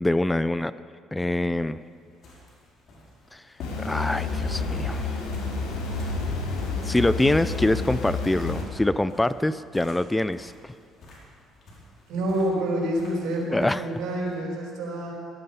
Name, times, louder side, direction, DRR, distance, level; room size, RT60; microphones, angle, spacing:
voice 1, 0.0-0.7 1.1-1.8 3.3-3.4 3.8-5.2 6.8-10.7 13.5-13.8, left 1 dB, 10° left, 15 dB, 0.3 m, -25 dB
sound 1, 1.6-14.4, left 2 dB, 55° left, 4.8 m, -49 dB
sound 2, 3.6-8.6, left 4 dB, 90° left, 3.9 m, -29 dB
voice 2, 12.1-15.1, right 1 dB, 75° right, -2 dB, 4.9 m, -27 dB
17.5 x 12.5 x 5.5 m, 2.2 s
cardioid pair, 105°, 0 cm